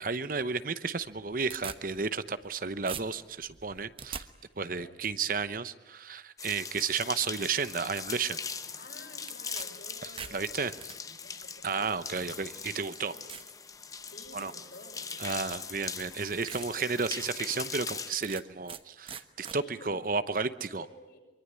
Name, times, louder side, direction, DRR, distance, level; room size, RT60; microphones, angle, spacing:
voice 1, 0.0-4.3 4.6-8.4 10.3-10.7 11.6-13.1 14.3-14.5 15.2-20.8, right 5 dB, 50° right, 13 dB, 0.9 m, -32 dB
sound 1, 1.0-2.6 2.9-4.2 9.3-9.7 10.0-11.0 11.8-11.9 12.6-12.7 13.3-13.5 14.0-14.4 15.5-15.6 16.1-16.2 16.5-16.7 17.1-17.2 18.2-18.8 19.1-19.6, right 7 dB, 30° right, 1.1 m, -42 dB
voice 2, 4.6-5.0 8.8-12.1 12.6-12.7 13.0-13.3 14.0-15.6 19.5-20.0 20.8-21.2, left 1 dB, 60° left, 2 dB, 6.3 m, -52 dB
sound 2, 6.4-18.1, left 5 dB, 20° left, 1.0 m, -41 dB
24.5 x 24.0 x 9.8 m, 1.1 s
head